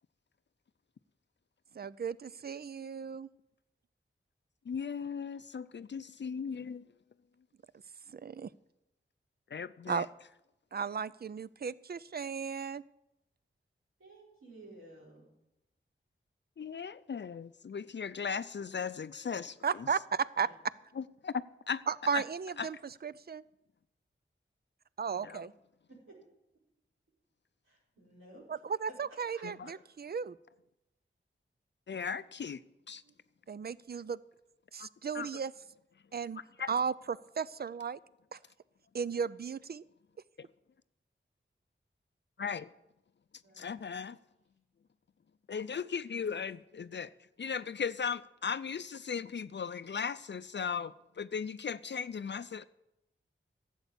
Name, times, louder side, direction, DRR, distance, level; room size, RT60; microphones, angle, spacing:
voice 1, 1.7-3.3 8.1-8.5 9.9-10.1 10.7-12.8 19.6-20.5 21.9-22.8 23.0-23.4 25.0-25.5 28.5-30.4 33.5-34.2 34.7-35.5 36.1-36.4 36.7-38.0 38.3-38.4 38.9-39.8, right 6 dB, 50° right, 0.5 m, -35 dB
voice 2, 4.7-6.8 9.5-10.0 16.6-19.6 21.0-21.8 22.1-22.2 22.6-22.7 25.2-25.4 29.4-29.5 31.9-32.6 32.9-33.0 34.8-34.9 35.1-35.3 36.6-36.7 40.4-40.5 42.4-42.7 43.6-44.2 45.5-47.1 47.4-52.7, left 6 dB, 60° left, 0.5 m, -37 dB
voice 3, 14.0-15.3 20.4-20.5 25.0-25.4 25.9-26.2 27.6-29.0 29.3-29.7 33.0-33.2 43.4-43.8, right 1 dB, 80° right, 5.8 m, -55 dB
12.5 x 8.1 x 8.3 m
wide cardioid pair, 65°, 21 cm